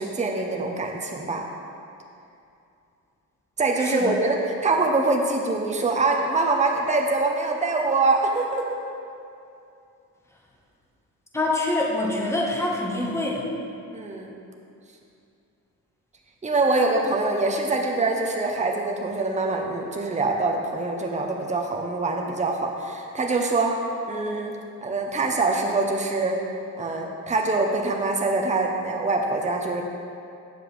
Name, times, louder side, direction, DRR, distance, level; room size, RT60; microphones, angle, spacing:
voice 1, 0.0-1.4 3.6-8.8 13.9-14.3 16.4-23.8 24.1-24.5 24.8-26.4 26.8-29.8, right 3 dB, 15° right, 1 dB, 1.0 m, -24 dB
voice 2, 3.8-4.2 11.3-13.5, left 2 dB, 5° left, -2 dB, 1.7 m, -25 dB
9.1 x 7.2 x 3.6 m, 2.6 s
hypercardioid pair, 55°, 45 cm